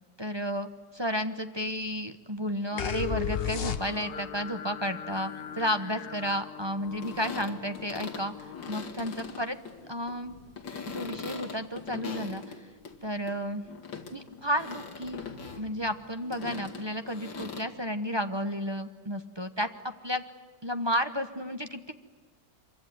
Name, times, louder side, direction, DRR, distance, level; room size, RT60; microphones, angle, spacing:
voice 1, 0.2-0.7 0.9-9.6 9.8-10.3 10.9-12.6 13.0-13.6 14.1-15.2 15.6-20.2 20.6-21.9, equal, 20° right, 7 dB, 0.8 m, -32 dB
Singing, 2.7-8.8, left 8 dB, 60° left, 1.4 m, -43 dB
sound 1, 2.8-4.3, left 8 dB, 45° left, 0.9 m, -31 dB
sound 2, 6.9-13.0 13.3-17.6, left 5 dB, 80° left, 3.0 m, -41 dB
25.5 x 24.0 x 9.4 m, 1.4 s
omnidirectional pair, 2.0 m